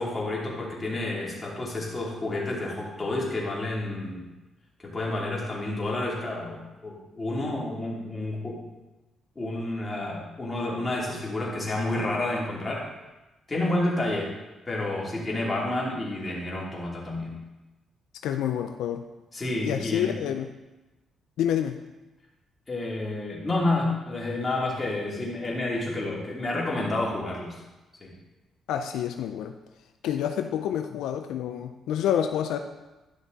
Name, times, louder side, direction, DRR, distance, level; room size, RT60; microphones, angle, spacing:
voice 1, 0.0-4.2 4.8-8.6 9.3-12.9 13.5-14.3 14.7-17.4 19.3-20.1 22.7-27.5 28.0-28.1, left 2 dB, 25° left, -4 dB, 3.0 m, -30 dB
voice 2, 18.2-19.0 19.6-20.5 21.4-21.8 28.7-29.6 30.0-32.6, left 9 dB, 85° left, 6 dB, 0.5 m, -28 dB
11.5 x 6.0 x 4.1 m, 1.1 s
cardioid pair, 90°, 0 cm